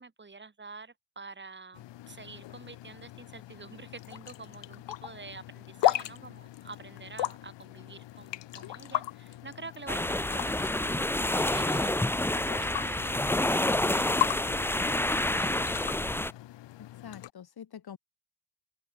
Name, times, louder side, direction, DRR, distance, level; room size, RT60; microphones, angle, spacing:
voice 1, 0.0-10.7 11.3-12.0 12.4-14.4, right 4 dB, 25° right, 4.3 m, -47 dB
sound 1, 1.7-17.3, left 15 dB, 90° left, 0.6 m, -37 dB
sound 2, 9.9-16.3, left 1 dB, 5° left, 0.7 m, -28 dB
voice 2, 16.8-18.0, left 8 dB, 60° left, 3.3 m, -46 dB
open air
wide cardioid pair, 165°, 42 cm